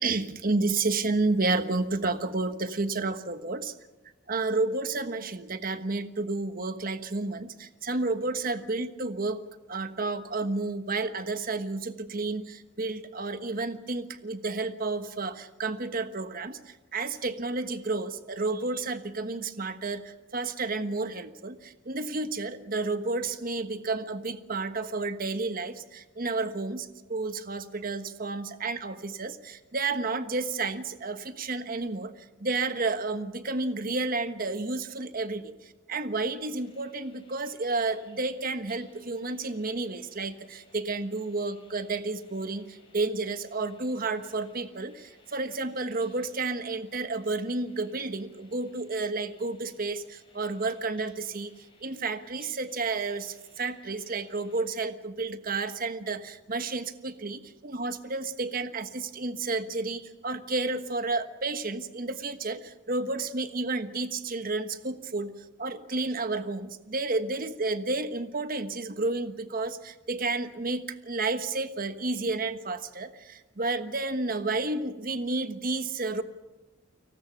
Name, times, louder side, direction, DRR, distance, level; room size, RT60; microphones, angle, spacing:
voice 1, 0.0-3.7 4.3-9.4 9.7-51.5 51.8-65.3 65.6-76.2, right 3 dB, 45° right, 10 dB, 1.3 m, -31 dB
sound 1, 36.4-54.6, left 3 dB, 25° left, 6.4 m, -61 dB
30.0 x 19.0 x 6.0 m, 1.2 s
head